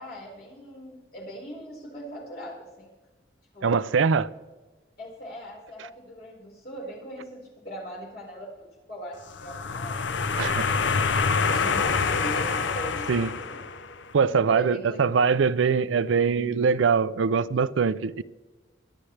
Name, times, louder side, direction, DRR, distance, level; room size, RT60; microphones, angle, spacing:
voice 1, 0.0-2.9 3.5-3.8 5.0-10.2 10.6-13.6 14.4-15.0, equal, 50° left, 4.7 m, -40 dB
voice 2, 3.6-4.3 10.4-10.7 13.1-13.3 14.1-18.2, right 5 dB, 90° right, 0.5 m, -23 dB
sound 1, 9.3-14.0, left 5 dB, 80° left, 0.7 m, -26 dB
22.0 x 9.9 x 3.3 m
head